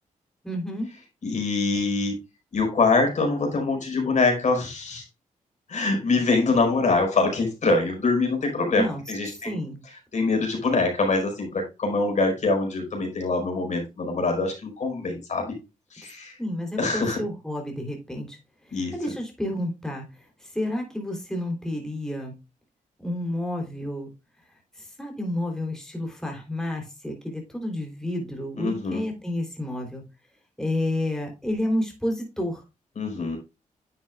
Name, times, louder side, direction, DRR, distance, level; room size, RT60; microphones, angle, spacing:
voice 1, 0.4-0.9 8.7-9.0 9.4-9.8 16.4-18.4 18.7-20.1 20.4-22.3 23.0-24.1 24.8-30.0 30.6-32.6, left 1 dB, 5° left, 1 dB, 3.4 m, -30 dB
voice 2, 1.2-2.1 2.5-5.0 5.7-9.6 10.1-15.5 15.9-16.3 16.8-17.2 18.7-18.9 28.6-29.0 33.0-33.4, left 3 dB, 60° left, 2 dB, 4.7 m, -24 dB
10.5 x 7.4 x 2.4 m, 0.26 s
cardioid pair, 80°, 14 cm